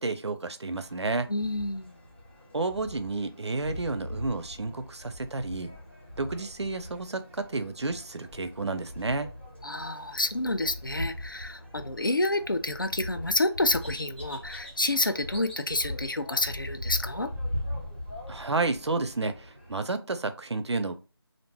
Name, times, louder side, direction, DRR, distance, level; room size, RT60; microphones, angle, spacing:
voice 1, 0.0-1.3 2.5-5.7 6.2-9.3 18.3-20.9, right 3 dB, 90° right, 9 dB, 0.5 m, -31 dB
sound 1, 0.7-19.7, left 1 dB, 25° left, 0.8 m, -40 dB
voice 2, 1.3-2.0 9.6-17.3, left 2 dB, 50° left, 8 dB, 0.4 m, -29 dB
2.5 x 2.1 x 3.3 m, 0.33 s
figure-of-eight pair, 175°, 14 cm